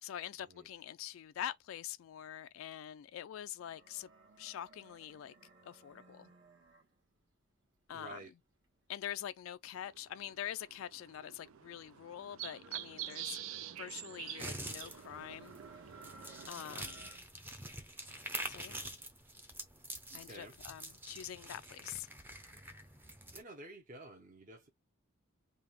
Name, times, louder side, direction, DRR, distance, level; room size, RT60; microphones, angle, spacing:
voice 1, 0.0-4.1 4.4-5.3 5.6-6.3 7.9-8.2 8.9-13.4 13.8-15.6 15.8-16.0 16.5-17.1 18.5-18.9 20.1-22.1, left 10 dB, 75° left, 0.3 m, -45 dB
sound 1, 3.6-7.2 7.7-10.0 10.5-17.4 17.7-18.5 18.9-19.9, right 2 dB, 60° right, 1.4 m, -60 dB
voice 2, 7.9-8.3 20.1-20.6 23.3-24.7, right 2 dB, 40° right, 0.8 m, -51 dB
sound 2, 9.7-16.5, right 12 dB, 75° right, 0.4 m, -47 dB
sound 3, 14.4-23.4, right 1 dB, 10° right, 0.6 m, -46 dB
3.4 x 2.4 x 3.5 m
head